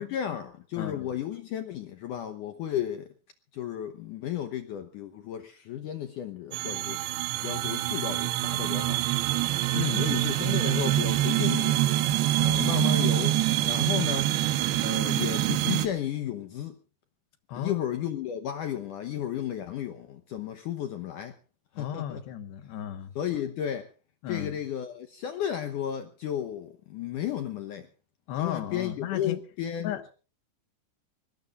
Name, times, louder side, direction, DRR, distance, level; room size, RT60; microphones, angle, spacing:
voice 1, 0.0-3.1 3.5-7.0 7.4-9.1 10.0-11.8 12.4-13.3 13.6-14.3 14.8-16.8 17.6-21.4 21.7-22.2 22.6-22.7 23.2-23.9 24.3-27.9 28.4-29.9, left 10 dB, 70° left, 2.0 m, -33 dB
voice 2, 0.8-1.1 9.7-10.2 17.5-17.9 21.8-23.1 24.2-24.6 28.3-29.4 29.8-30.0, left 11 dB, 85° left, 3.6 m, -34 dB
sound 1, 6.5-15.9, right 14 dB, 80° right, 3.1 m, -26 dB
24.0 x 19.5 x 2.5 m
omnidirectional pair, 4.8 m